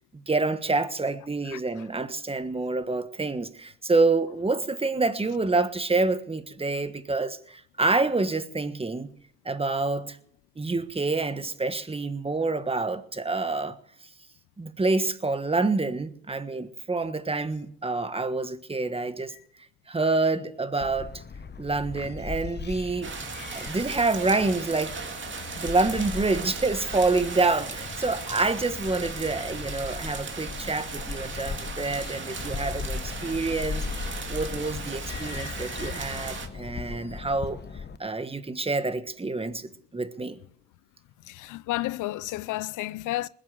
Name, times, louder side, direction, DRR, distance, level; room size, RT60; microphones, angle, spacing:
voice 1, 0.1-9.1 9.4-10.2 10.6-13.8 14.6-19.3 19.9-21.1 21.6-23.1 23.5-24.9 25.6-37.6 38.0-40.4, right 3 dB, 20° right, 1.4 m, -27 dB
sound 1, 20.8-38.0, left 5 dB, 35° left, 1.0 m, -38 dB
sound 2, 23.0-36.5, right 5 dB, 40° right, 2.3 m, -37 dB
voice 2, 35.1-35.9 41.3-43.3, left 16 dB, 85° left, 0.6 m, -32 dB
20.0 x 8.1 x 8.1 m
cardioid pair, 90°, 30 cm